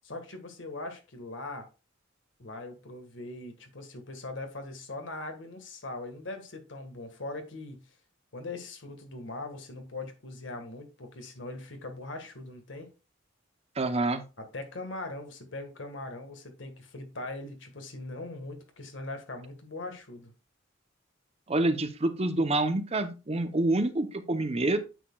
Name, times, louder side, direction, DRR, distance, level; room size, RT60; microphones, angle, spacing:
voice 1, 0.0-1.7 2.4-7.8 8.3-12.9 14.4-20.3, left 2 dB, 70° left, 1.6 m, -41 dB
voice 2, 13.8-14.2 21.5-24.8, right 2 dB, 30° right, 0.7 m, -27 dB
9.0 x 6.5 x 2.3 m
head